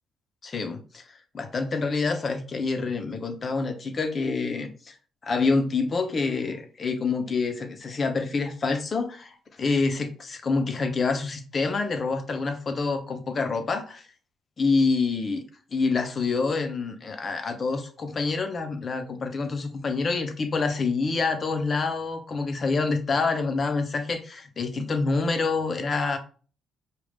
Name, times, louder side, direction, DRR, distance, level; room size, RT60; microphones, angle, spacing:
voice 1, 0.4-1.0 1.3-4.9 5.2-14.1 14.6-15.4 15.7-26.2, left 4 dB, 40° left, 7 dB, 0.8 m, -27 dB
5.0 x 2.4 x 3.5 m, 0.40 s
cardioid pair, 90°, 0 cm